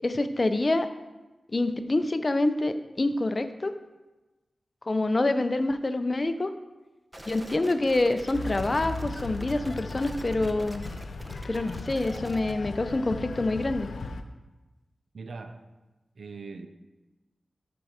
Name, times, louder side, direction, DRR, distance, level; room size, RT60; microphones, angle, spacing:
voice 1, 0.0-0.9 1.5-3.7 4.9-6.5 7.3-10.8 11.5-13.9, left 2 dB, 35° left, 0.6 m, -26 dB
sound 1, 7.1-12.5, right 1 dB, 15° right, 0.8 m, -45 dB
sound 2, 8.3-14.2, left 3 dB, 80° left, 0.6 m, -37 dB
voice 2, 15.1-15.7 16.2-16.7, right 4 dB, 70° right, 0.7 m, -40 dB
13.0 x 4.6 x 5.0 m
wide cardioid pair, 115°, 0 cm